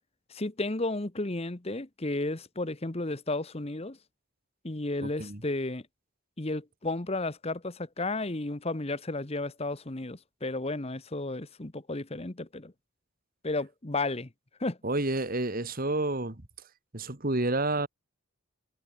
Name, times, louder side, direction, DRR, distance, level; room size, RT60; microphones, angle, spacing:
voice 1, 0.3-4.0 4.6-5.9 6.4-12.7 13.4-14.3 14.6-14.8, left 2 dB, 30° left, 1.1 m, -33 dB
voice 2, 5.0-5.4 14.8-16.4 16.9-17.9, right 2 dB, 40° right, 2.0 m, -29 dB
head